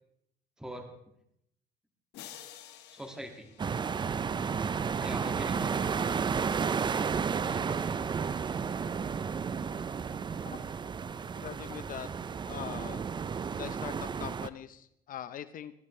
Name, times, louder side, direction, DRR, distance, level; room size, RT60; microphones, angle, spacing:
voice 1, 0.6-0.9 2.9-3.5 5.0-6.0 7.4-8.1, right 1 dB, 5° right, 3 dB, 2.2 m, -43 dB
sound 1, 2.1-4.5, left 11 dB, 85° left, 1.7 m, -51 dB
sound 2, 3.6-14.5, right 6 dB, 25° right, 0.5 m, -32 dB
voice 2, 11.3-12.1 12.5-13.1 13.6-15.7, left 10 dB, 55° left, 13 dB, 0.8 m, -42 dB
22.0 x 14.0 x 3.3 m, 0.76 s
cardioid pair, 110°, 17 cm